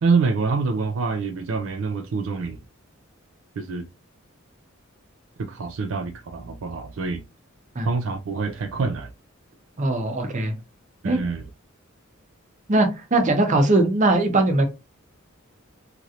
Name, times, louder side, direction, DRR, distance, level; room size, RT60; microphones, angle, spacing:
voice 1, 0.0-2.6 3.6-3.9 5.4-7.2 7.8-9.1 11.0-11.4, right 4 dB, 70° right, 0.4 m, -26 dB
voice 2, 9.8-10.5 11.0-11.2 12.7-14.6, right 2 dB, 35° right, 0.7 m, -20 dB
3.0 x 2.5 x 2.8 m
head